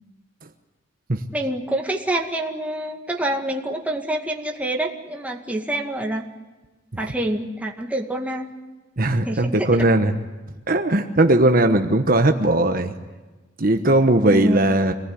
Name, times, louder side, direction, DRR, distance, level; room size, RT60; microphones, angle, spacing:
voice 1, 1.3-6.3 7.0-8.5 9.3-9.8 14.3-14.6, right 1 dB, 10° right, 0 dB, 2.0 m, -26 dB
voice 2, 9.0-10.2 10.7-12.9 13.6-14.9, right 1 dB, 45° right, 5 dB, 1.2 m, -18 dB
26.0 x 19.0 x 9.8 m, 1.2 s
head